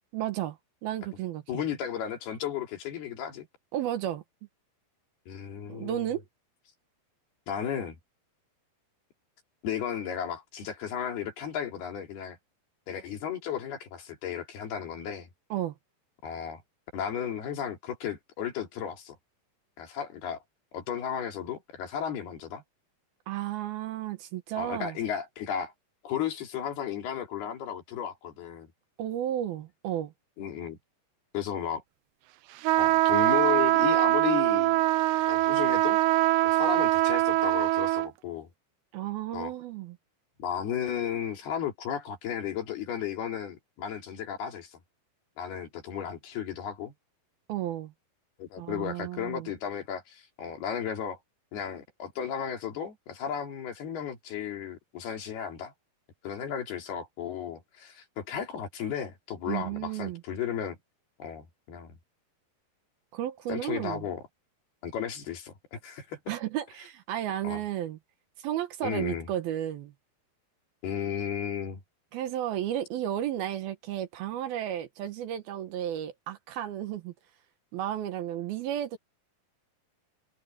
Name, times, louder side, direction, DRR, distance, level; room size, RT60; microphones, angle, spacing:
voice 1, 0.1-0.6 0.8-1.6 3.7-4.2 5.7-6.2 15.5-15.7 23.3-25.0 29.0-30.1 38.9-40.0 47.5-47.9 48.6-49.5 59.5-60.2 63.1-64.1 66.3-68.0 68.4-69.9 72.1-77.1 77.7-79.0, right 12 dB, 70° right, 2.9 m, -33 dB
voice 2, 1.5-3.5 5.3-6.1 7.5-8.0 9.6-12.4 12.9-15.3 16.2-16.6 16.9-19.2 19.8-20.4 20.7-22.6 24.5-25.7 26.0-28.7 30.4-30.8 31.3-31.8 32.8-34.8 35.3-36.0 36.4-38.5 39.3-39.5 40.4-44.8 45.4-46.9 48.4-51.2 51.5-55.7 56.2-60.8 61.2-61.9 63.5-64.2 64.8-66.2 67.4-67.6 68.8-69.3 70.8-71.8, left 9 dB, 70° left, 4.8 m, -34 dB
sound 1, 32.6-38.1, right 17 dB, 85° right, 2.7 m, -23 dB
omnidirectional pair, 4.8 m